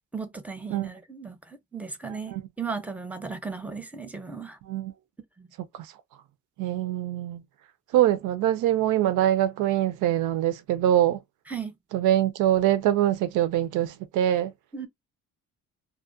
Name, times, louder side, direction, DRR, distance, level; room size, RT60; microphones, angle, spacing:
voice 1, 0.1-4.6 5.4-5.5 11.5-11.7 14.7-14.9, right 5 dB, 5° right, 0.5 m, -36 dB
voice 2, 6.6-7.4 7.9-11.2 11.9-14.5, right 12 dB, 90° right, 0.5 m, -23 dB
2.4 x 2.1 x 2.5 m
cardioid pair, 90°, 30 cm